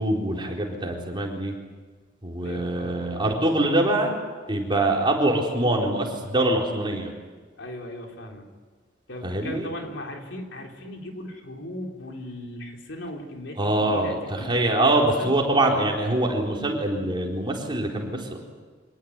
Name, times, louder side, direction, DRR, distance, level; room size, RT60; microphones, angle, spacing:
voice 1, 0.0-1.5 2.2-4.1 4.5-7.1 9.2-9.7 13.6-18.4, right 1 dB, 25° right, 0 dB, 4.3 m, -24 dB
voice 2, 2.4-3.1 7.6-8.5 9.1-14.6 14.9-15.4, left 1 dB, 75° left, 1 dB, 4.0 m, -38 dB
25.5 x 18.5 x 9.7 m, 1.4 s
head